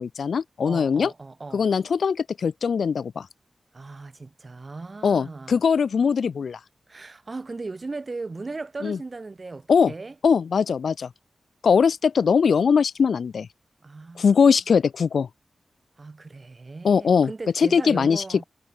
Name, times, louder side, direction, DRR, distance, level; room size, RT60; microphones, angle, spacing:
voice 1, 0.0-1.1 1.5-3.3 5.0-6.6 8.8-9.0 9.7-9.9 10.2-11.1 11.6-13.5 14.2-15.3 16.8-17.3 17.6-18.4, left 6 dB, 75° left, 0.9 m, -21 dB
voice 2, 0.6-1.7 3.7-5.6 6.9-10.2 13.8-14.3 16.0-18.5, right 3 dB, 35° right, 1.9 m, -37 dB
wide cardioid pair, 135°, 0 cm